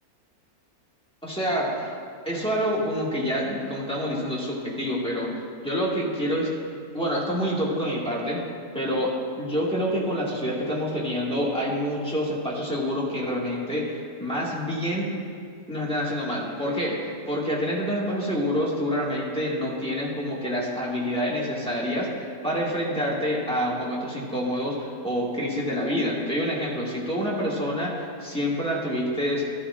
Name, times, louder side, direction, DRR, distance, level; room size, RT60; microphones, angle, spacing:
voice 1, 1.2-1.9 2.2-6.5 6.9-8.4 8.7-15.1 15.7-17.0 17.2-29.4, equal, 5° left, -6 dB, 1.7 m, -27 dB
14.5 x 12.0 x 2.5 m, 2.2 s
omnidirectional pair, 1.6 m